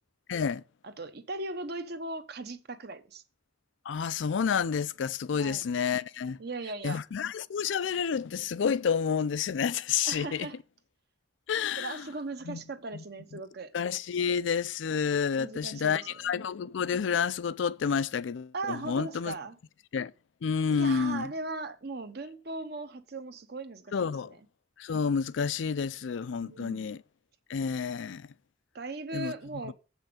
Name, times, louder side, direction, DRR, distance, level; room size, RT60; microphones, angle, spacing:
voice 1, 0.3-0.6 3.9-6.4 6.8-10.5 11.5-12.0 12.5-12.6 12.9-13.0 13.7-19.4 19.9-20.1 20.4-21.3 23.9-24.3 24.8-27.0 27.5-28.3 29.1-29.3 29.6-29.7, left 6 dB, 85° left, 0.4 m, -29 dB
voice 2, 0.8-3.2 5.3-5.6 6.4-7.0 10.0-10.6 11.8-13.7 15.4-16.1 18.5-19.6 20.7-24.4 26.4-27.0 28.7-29.7, right 3 dB, 60° right, 0.9 m, -38 dB
7.8 x 5.6 x 5.1 m
head